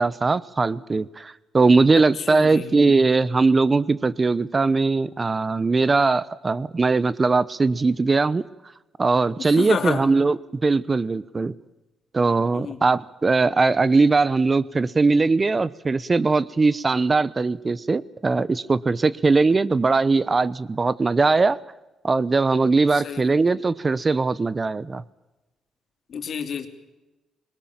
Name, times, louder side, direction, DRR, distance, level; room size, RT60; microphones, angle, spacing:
voice 1, 0.0-8.4 9.0-11.5 12.1-21.6 22.0-25.0, right 3 dB, 30° right, 18 dB, 0.8 m, -20 dB
voice 2, 1.9-2.7 9.4-10.0 12.5-12.8 22.9-23.4 26.1-26.7, left 7 dB, 60° left, 8 dB, 3.0 m, -30 dB
21.5 x 20.5 x 8.8 m, 1.1 s
cardioid pair, 90°, 0 cm